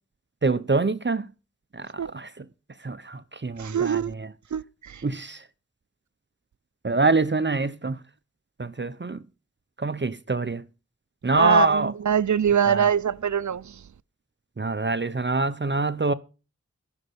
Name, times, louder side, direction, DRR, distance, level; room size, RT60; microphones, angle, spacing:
voice 1, 0.4-1.3 1.7-2.5 2.8-4.3 5.0-5.4 6.8-8.0 8.6-9.2 9.8-10.6 11.2-11.9 12.7-12.9 14.6-16.1, right 3 dB, 40° right, 0.7 m, -25 dB
voice 2, 3.6-4.1 4.5-5.0 11.3-13.8, right 8 dB, 85° right, 0.5 m, -24 dB
14.5 x 6.5 x 6.8 m
wide cardioid pair, 45°, 29 cm